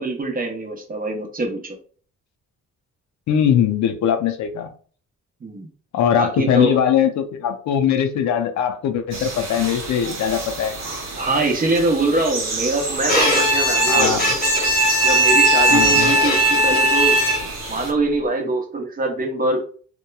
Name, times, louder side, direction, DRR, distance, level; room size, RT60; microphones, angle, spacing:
voice 1, 0.0-1.8 5.4-5.7 6.2-6.8 11.2-14.2 15.0-17.2 17.7-19.6, right 2 dB, 30° right, 0.7 m, -23 dB
voice 2, 3.3-4.7 5.9-10.8 13.9-14.4 15.7-16.1, left 9 dB, 70° left, 0.5 m, -21 dB
sound 1, 9.1-17.9, right 3 dB, 60° right, 0.9 m, -28 dB
Bowed string instrument, 13.1-17.7, right 1 dB, 30° left, 0.9 m, -18 dB
2.9 x 2.1 x 2.2 m
cardioid pair, 90°, 30 cm